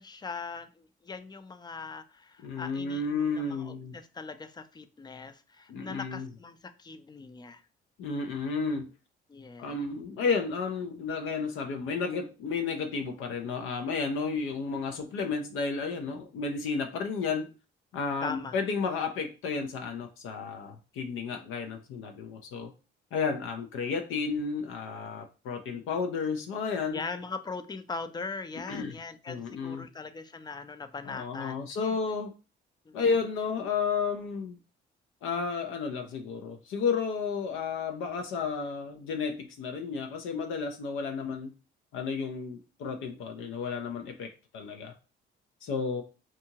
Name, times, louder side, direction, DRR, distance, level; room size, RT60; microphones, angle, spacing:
voice 1, 0.0-7.6 9.3-9.8 15.1-15.2 18.2-18.6 21.3-21.5 26.9-32.0 32.9-33.0, left 4 dB, 20° left, 10 dB, 0.3 m, -41 dB
voice 2, 2.4-4.0 5.7-6.3 8.0-8.9 9.6-17.5 17.9-22.7 23.1-27.0 28.7-29.0 29.3-29.9 31.1-32.3 32.9-34.6 35.2-41.5 41.9-44.9 45.6-46.0, left 5 dB, 85° left, 4 dB, 0.5 m, -32 dB
2.7 x 2.4 x 2.8 m, 0.32 s
cardioid pair, 90°, 20 cm